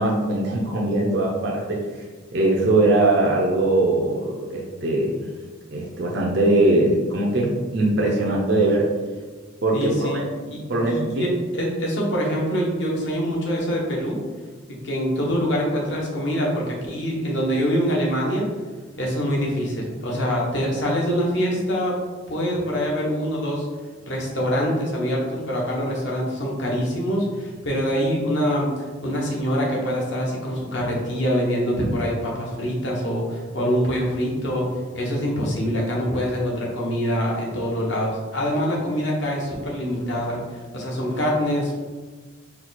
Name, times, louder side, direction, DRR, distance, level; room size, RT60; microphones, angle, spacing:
voice 1, 0.0-1.8 2.3-5.3 5.7-8.9 9.6-10.3 10.7-11.3, right 2 dB, 55° right, -2 dB, 0.6 m, -21 dB
voice 2, 9.7-10.2 10.5-10.6 10.9-14.2 14.7-18.5 19.0-22.0 22.3-23.7 24.1-28.7 29.0-34.7 34.9-40.4 40.7-41.9, equal, 60° left, -3 dB, 1.1 m, -24 dB
4.4 x 2.4 x 4.1 m, 1.4 s
head